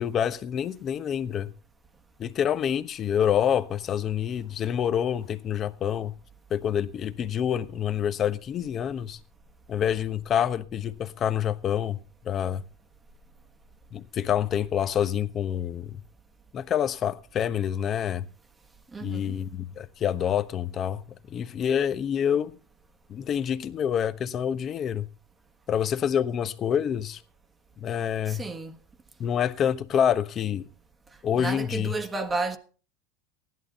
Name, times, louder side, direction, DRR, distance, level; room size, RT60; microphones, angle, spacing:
voice 1, 0.0-1.5 2.2-6.1 6.5-9.2 9.7-12.6 13.9-16.0 16.5-18.2 19.0-21.0 21.3-22.5 23.1-25.1 25.7-27.2 27.8-28.4 29.2-30.7 31.2-31.9, left 9 dB, 35° left, 1.1 m, -27 dB
voice 2, 18.9-19.3 28.3-28.8 31.3-32.6, right 3 dB, 15° right, 1.4 m, -31 dB
16.0 x 11.5 x 4.2 m
supercardioid pair, 130°, 0 cm